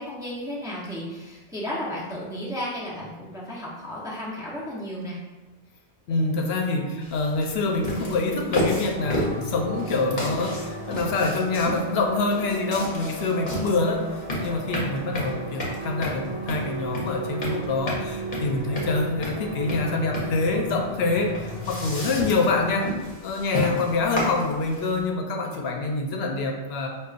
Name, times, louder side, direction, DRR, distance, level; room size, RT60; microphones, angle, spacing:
voice 1, 0.0-5.2, equal, 5° right, -7 dB, 0.6 m, -33 dB
voice 2, 6.1-22.9 23.2-26.9, left 3 dB, 80° left, 2 dB, 0.8 m, -26 dB
sound 1, 7.0-25.0, left 1 dB, 50° left, 0.9 m, -32 dB
sound 2, 9.0-22.6, right 2 dB, 55° right, 0.9 m, -36 dB
5.1 x 2.4 x 2.4 m, 1.2 s
omnidirectional pair, 1.1 m